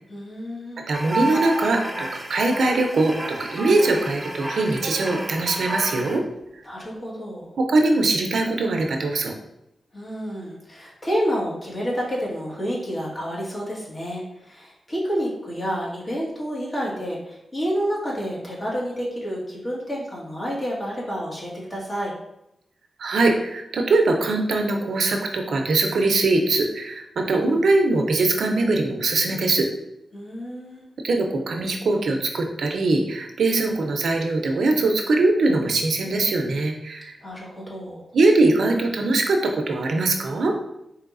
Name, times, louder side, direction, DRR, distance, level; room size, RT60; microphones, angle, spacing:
voice 1, 0.1-0.8 6.6-7.6 9.9-22.1 30.1-30.9 37.2-38.1, equal, 35° left, -5 dB, 1.5 m, -29 dB
sound 1, 0.9-6.2, right 1 dB, 20° right, 0.9 m, -31 dB
voice 2, 0.9-6.2 7.6-9.3 23.0-29.7 31.0-37.2 38.1-40.5, right 2 dB, 75° right, 3 dB, 0.5 m, -21 dB
4.7 x 3.0 x 2.5 m, 0.83 s
cardioid pair, 75°, 0 cm